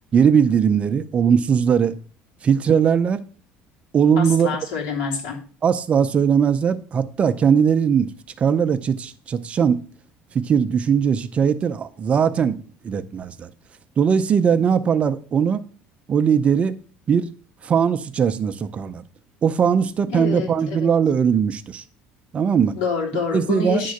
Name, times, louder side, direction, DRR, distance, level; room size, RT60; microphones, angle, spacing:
voice 1, 0.1-1.9 2.4-3.2 3.9-4.5 5.6-8.1 8.4-9.8 10.3-13.5 14.0-15.6 16.1-16.8 17.1-17.3 17.6-19.0 19.4-21.8 22.3-22.8 23.3-23.8, right 7 dB, 25° right, 0.5 m, -19 dB
voice 2, 4.1-5.4 20.1-20.9 22.7-23.9, left 5 dB, 80° left, 3.2 m, -27 dB
10.5 x 3.8 x 6.4 m
cardioid pair, 150°, 5 cm